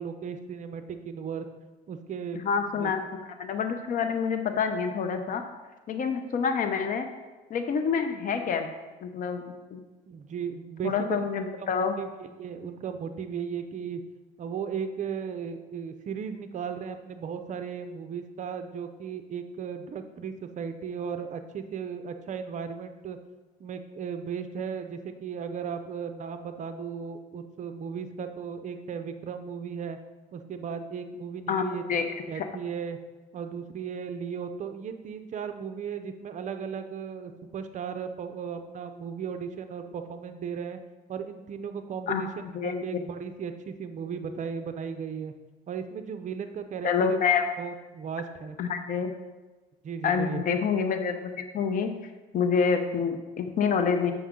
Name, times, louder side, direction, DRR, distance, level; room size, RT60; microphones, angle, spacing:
voice 1, 0.0-1.4 1.9-2.9 10.1-10.9 11.6-14.0 14.4-23.2 23.6-30.0 30.3-32.0 32.3-33.0 33.3-40.8 41.1-42.3 42.6-45.3 45.7-47.3 47.6-48.6 49.8-50.4, right 6 dB, 45° right, 8 dB, 0.6 m, -36 dB
voice 2, 2.4-3.0 3.4-5.4 5.9-7.1 7.5-8.7 9.0-9.8 10.8-11.9 31.5-31.6 31.9-32.1 32.3-32.5 42.1-42.2 42.5-42.8 46.8-47.5 48.6-49.1 50.0-51.9 52.3-54.1, left 6 dB, 55° left, 6 dB, 0.8 m, -27 dB
7.1 x 6.1 x 3.7 m, 1.2 s
cardioid pair, 110°, 17 cm